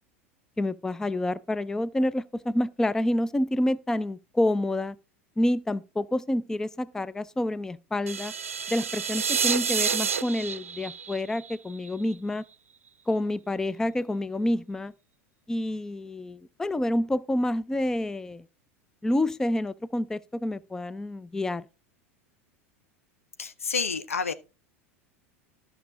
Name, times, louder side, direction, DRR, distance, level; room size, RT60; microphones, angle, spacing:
voice 1, 0.6-5.0 5.4-8.3 8.7-12.4 13.1-14.9 15.5-18.4 19.0-21.7, left 1 dB, 5° left, 0.4 m, -28 dB
sound 1, 8.1-12.1, right 6 dB, 80° right, 0.4 m, -29 dB
voice 2, 23.4-24.3, left 5 dB, 80° left, 0.8 m, -29 dB
13.0 x 6.0 x 3.8 m
figure-of-eight pair, 80°, 7 cm